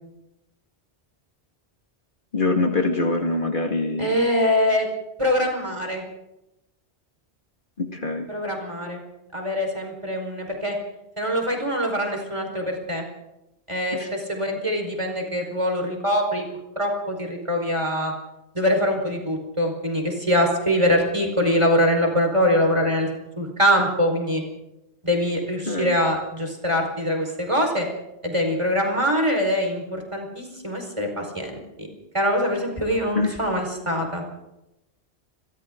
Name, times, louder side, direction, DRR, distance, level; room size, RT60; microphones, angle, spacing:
voice 1, 2.3-4.1 7.8-8.3 14.0-14.1 25.7-25.9 33.2-33.4, left 2 dB, 50° left, 2 dB, 2.4 m, -24 dB
voice 2, 4.0-4.9 5.2-6.0 8.3-9.0 9.3-10.7 11.2-13.1 13.7-16.5 16.7-18.1 18.5-23.1 23.4-24.4 25.0-27.9 28.2-31.9 32.1-34.2, equal, 25° right, 2 dB, 4.9 m, -23 dB
29.5 x 23.0 x 3.9 m, 0.90 s
omnidirectional pair, 1.1 m